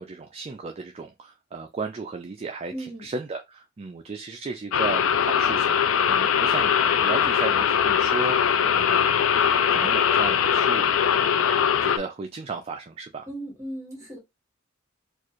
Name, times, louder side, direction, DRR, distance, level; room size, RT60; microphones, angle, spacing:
voice 1, 0.0-11.5 11.8-13.3, right 4 dB, 30° right, 0.4 m, -35 dB
voice 2, 2.7-3.1 13.3-14.2, right 1 dB, 15° right, 1.6 m, -36 dB
sound 1, 4.7-12.0, left 8 dB, 90° left, 0.4 m, -21 dB
4.5 x 2.4 x 3.0 m
head